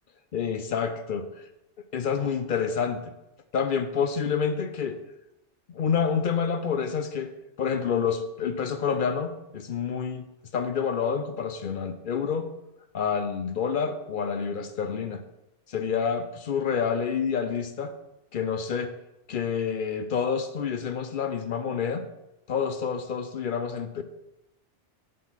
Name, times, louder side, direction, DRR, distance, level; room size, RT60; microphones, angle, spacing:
voice 1, 0.3-1.3 1.9-3.1 3.5-5.0 5.7-7.3 7.6-10.2 10.5-12.5 12.9-15.2 15.7-17.9 18.3-18.9 19.3-22.1 22.5-24.0, left 6 dB, 55° left, 9 dB, 0.6 m, -28 dB
7.4 x 4.1 x 5.5 m, 0.90 s
omnidirectional pair, 1.2 m